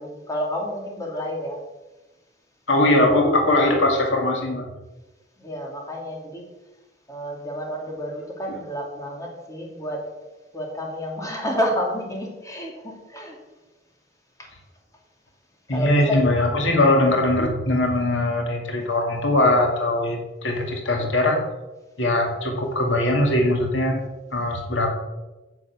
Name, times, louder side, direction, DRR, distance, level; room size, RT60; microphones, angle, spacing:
voice 1, 0.0-1.6 5.4-6.5 7.1-10.1 10.5-13.4 14.4-14.5 15.7-16.2, equal, 20° left, 0 dB, 2.6 m, -30 dB
voice 2, 2.7-4.7 15.7-21.4 22.0-24.0 24.3-24.9, left 1 dB, 80° left, 2 dB, 2.3 m, -21 dB
9.4 x 7.8 x 7.9 m, 1.1 s
head